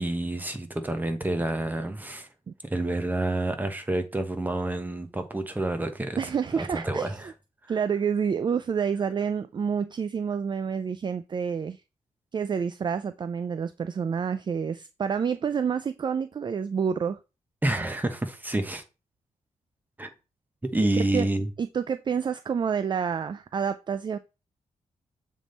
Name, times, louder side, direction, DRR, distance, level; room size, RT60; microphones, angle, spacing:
voice 1, 0.0-2.3 2.7-6.2 6.5-7.3 17.6-18.8 20.0-20.1 20.7-21.5, right 1 dB, 15° right, 1.1 m, -28 dB
voice 2, 6.2-7.1 7.7-11.8 12.3-17.2 20.9-21.3 21.6-24.2, right 6 dB, 35° right, 0.4 m, -28 dB
7.2 x 3.6 x 4.0 m
cardioid pair, 85°, 13 cm